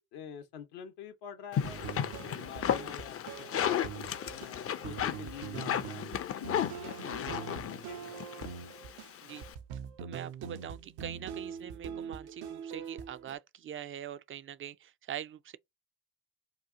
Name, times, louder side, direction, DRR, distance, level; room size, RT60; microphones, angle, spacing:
voice 1, 0.0-1.9 2.2-3.8 4.3-8.0, left 8 dB, 70° left, 0.8 m, -47 dB
sound 1, 1.5-9.5, left 9 dB, 35° left, 0.5 m, -34 dB
sound 2, 1.6-13.4, right 8 dB, 70° right, 0.7 m, -43 dB
voice 2, 10.0-15.6, right 10 dB, 35° right, 0.4 m, -43 dB
2.9 x 2.3 x 3.5 m
hypercardioid pair, 45°, 41 cm